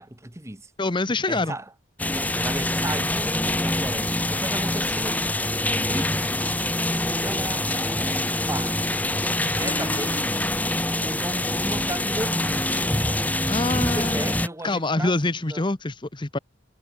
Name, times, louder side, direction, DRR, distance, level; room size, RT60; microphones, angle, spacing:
voice 1, 0.0-0.7 1.3-1.7 2.1-5.2 5.9-6.8 7.1-8.8 9.6-10.4 11.0-12.7 13.7-15.7, right 1 dB, 15° right, 1.3 m, -35 dB
voice 2, 0.8-1.5 9.6-10.5 13.5-14.3 14.6-16.4, left 2 dB, 25° left, 0.8 m, -26 dB
sound 1, 2.0-14.5, left 1 dB, 10° left, 1.6 m, -25 dB
head